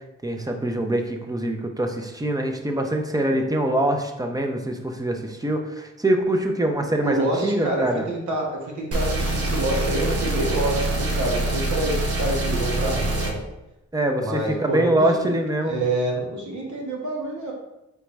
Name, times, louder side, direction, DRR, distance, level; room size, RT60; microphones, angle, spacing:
voice 1, 0.2-8.1 13.9-15.8, right 1 dB, 15° right, 3 dB, 0.6 m, -24 dB
voice 2, 7.0-13.4 14.2-15.4 15.6-17.5, right 2 dB, 85° right, -1 dB, 1.3 m, -27 dB
sound 1, 8.9-13.3, right 1 dB, 55° right, 0.9 m, -25 dB
4.6 x 3.4 x 3.1 m, 0.93 s
cardioid pair, 95°, 29 cm